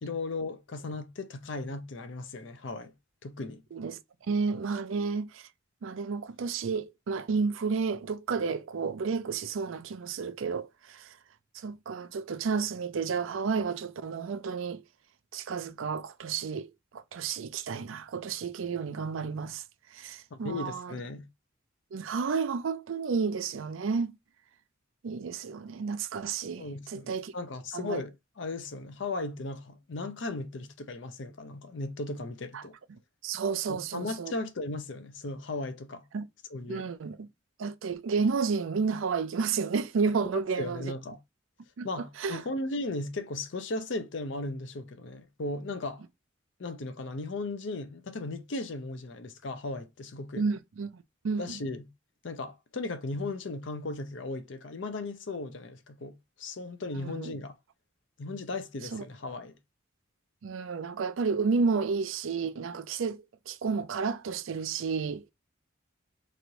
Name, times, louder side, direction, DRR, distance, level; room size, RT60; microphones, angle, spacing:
voice 1, 0.0-2.9 3.2-3.6 20.3-21.3 26.6-32.7 33.7-36.0 36.5-36.9 40.3-41.2 41.8-46.0 46.6-50.4 51.4-51.9 52.2-57.5 58.2-59.5, left 2 dB, 65° left, 0.6 m, -36 dB
voice 2, 4.3-5.5 5.8-11.1 11.5-14.8 15.3-19.6 19.9-20.9 21.9-24.2 25.0-27.3 27.7-28.0 32.5-32.6 32.9-34.3 36.1-36.3 36.7-37.3 37.6-40.9 41.8-42.4 50.4-50.9 51.2-51.6 57.0-57.3 58.9-59.0 60.4-65.2, right 5 dB, 75° right, 0.4 m, -31 dB
3.1 x 2.6 x 2.7 m
head